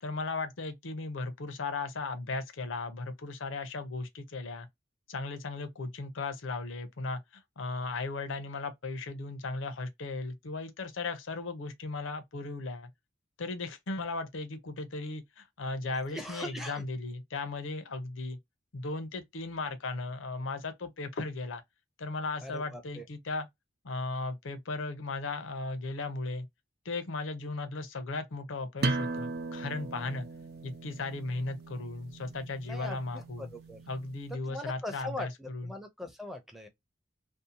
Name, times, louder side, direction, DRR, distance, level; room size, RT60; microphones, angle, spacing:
voice 1, 0.0-4.7 5.1-12.9 13.4-18.4 18.7-21.6 22.0-23.5 23.8-26.5 26.8-30.3 30.6-33.5 33.9-35.7, left 3 dB, 90° left, 0.6 m, -36 dB
voice 2, 16.1-16.9 22.4-23.0 32.7-33.8 34.4-36.7, left 1 dB, ahead, 0.5 m, -41 dB
sound 1, 28.8-34.2, right 3 dB, 55° right, 0.4 m, -37 dB
2.7 x 2.1 x 2.7 m
head